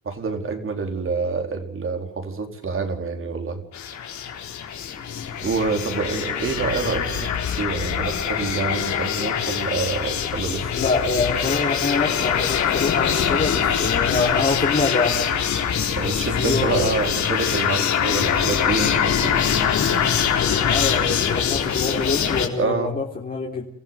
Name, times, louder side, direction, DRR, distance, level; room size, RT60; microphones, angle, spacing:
voice 1, 0.0-3.6 5.4-10.7 16.0-19.4 22.6-22.9, right 4 dB, 45° right, 5 dB, 4.6 m, -27 dB
sound 1, 3.7-22.5, left 8 dB, 70° left, 4.1 m, -23 dB
voice 2, 10.7-15.3 16.4-17.4 20.5-23.7, left 3 dB, 30° left, -2 dB, 3.7 m, -25 dB
27.5 x 15.5 x 8.0 m, 0.64 s
cardioid pair, 90°, 30 cm